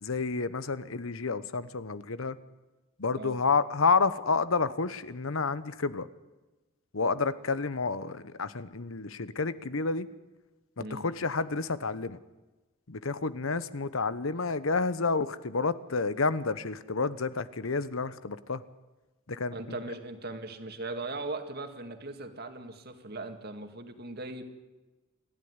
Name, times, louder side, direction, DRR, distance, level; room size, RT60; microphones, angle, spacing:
voice 1, 0.0-2.4 3.0-6.1 6.9-10.1 10.8-12.2 12.9-18.6 19.3-19.6, left 4 dB, 80° left, 15 dB, 1.0 m, -30 dB
voice 2, 19.5-24.4, right 2 dB, 50° right, 6 dB, 2.2 m, -39 dB
29.0 x 12.0 x 9.7 m, 1.1 s
head